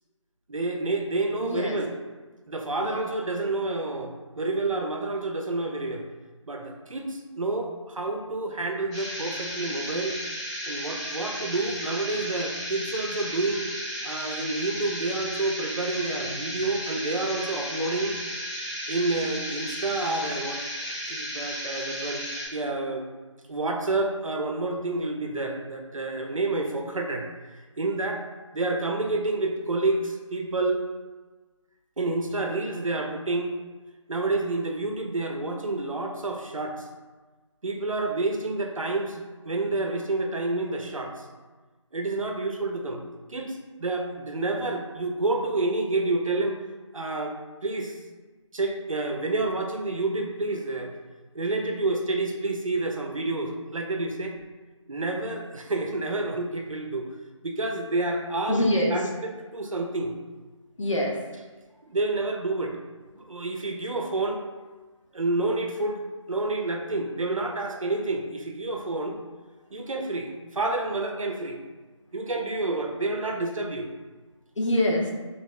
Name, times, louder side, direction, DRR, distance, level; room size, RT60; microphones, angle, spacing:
voice 1, 0.5-1.9 2.5-6.0 6.5-10.1 10.7-13.7 14.0-18.2 18.9-20.6 21.1-22.2 22.5-23.1 23.5-28.2 28.5-30.8 32.0-33.5 34.1-36.9 37.6-39.2 39.4-41.2 41.9-43.0 43.3-46.6 46.9-47.3 47.6-48.0 48.5-50.9 51.3-54.3 54.9-57.1 57.4-60.2 61.9-62.8 63.1-64.4 65.1-69.2 69.7-71.6 72.1-73.9, right 2 dB, 85° right, 2 dB, 0.6 m, -29 dB
voice 2, 1.4-1.8 2.8-3.1 58.5-59.0 60.8-61.2 74.6-75.1, left 1 dB, 70° left, -1 dB, 0.8 m, -25 dB
sound 1, 8.9-22.5, equal, 15° left, 1.1 m, -34 dB
2.9 x 2.8 x 3.0 m, 1.3 s
figure-of-eight pair, 165°, 16 cm